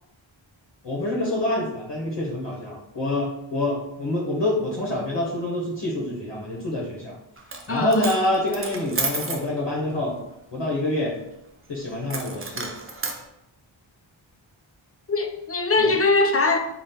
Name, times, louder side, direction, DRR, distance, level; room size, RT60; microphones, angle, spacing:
voice 1, 0.8-7.1 7.7-10.2 10.5-11.2 11.7-12.7 15.8-15.9, left 1 dB, 60° left, -4 dB, 1.0 m, -26 dB
Coin (dropping), 7.4-7.7 7.9-9.5 12.1-13.2, right 3 dB, 30° right, 0.5 m, -30 dB
voice 2, 7.7-8.2 15.1-16.6, left 3 dB, 30° left, 4 dB, 0.4 m, -21 dB
4.2 x 2.3 x 3.6 m, 0.87 s
wide cardioid pair, 85°, 47 cm